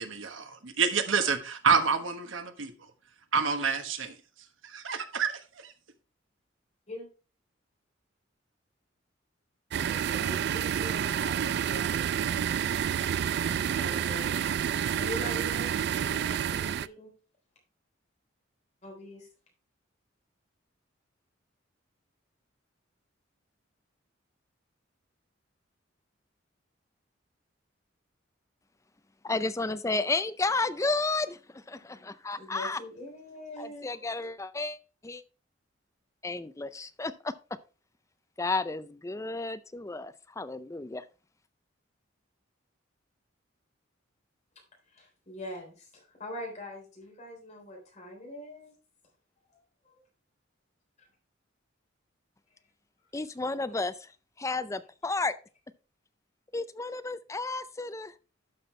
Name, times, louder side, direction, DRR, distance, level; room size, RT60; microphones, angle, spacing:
voice 1, 0.0-2.9 3.3-4.2 4.6-5.7, right 5 dB, 80° right, 1.2 m, -28 dB
voice 2, 9.7-12.4 13.0-13.1 13.6-14.4 15.0-17.1 18.8-19.3 32.4-34.1 44.9-48.7 49.5-49.6 51.0-51.1, left 1 dB, 35° left, 3.6 m, -43 dB
sound 1, 9.7-16.9, right 8 dB, 55° right, 0.3 m, -29 dB
voice 3, 29.2-32.8 33.6-34.8 35.0-35.2 36.2-37.3 38.4-41.1 53.1-53.9 54.4-55.3 56.5-58.1, left 3 dB, 15° left, 0.4 m, -32 dB
12.0 x 5.8 x 3.2 m
head